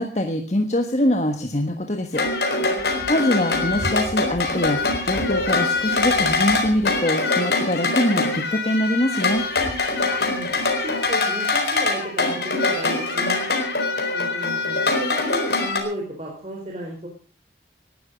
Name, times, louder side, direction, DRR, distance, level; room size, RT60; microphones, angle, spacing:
voice 1, 0.0-2.2 3.1-9.4, left 1 dB, 40° left, 5 dB, 1.4 m, -23 dB
sound 1, 2.1-15.8, left 3 dB, 70° left, 4.1 m, -23 dB
voice 2, 2.5-3.1 10.0-13.4 14.1-17.1, right 1 dB, 35° right, -1 dB, 4.2 m, -34 dB
19.0 x 12.5 x 5.2 m, 0.39 s
head